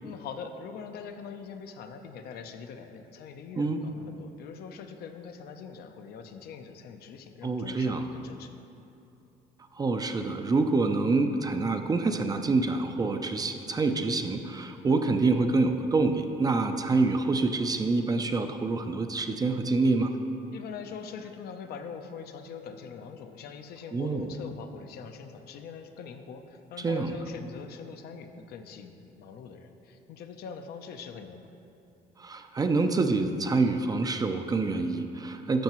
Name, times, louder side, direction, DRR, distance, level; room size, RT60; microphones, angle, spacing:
voice 1, 0.0-8.6 20.5-31.5, left 6 dB, 70° left, 6 dB, 0.6 m, -43 dB
voice 2, 7.4-8.1 9.8-20.1 23.9-24.3 26.8-27.1 32.2-35.6, right 3 dB, 20° right, 6 dB, 0.4 m, -26 dB
11.5 x 6.5 x 3.0 m, 2.8 s
cardioid pair, 110°, 17 cm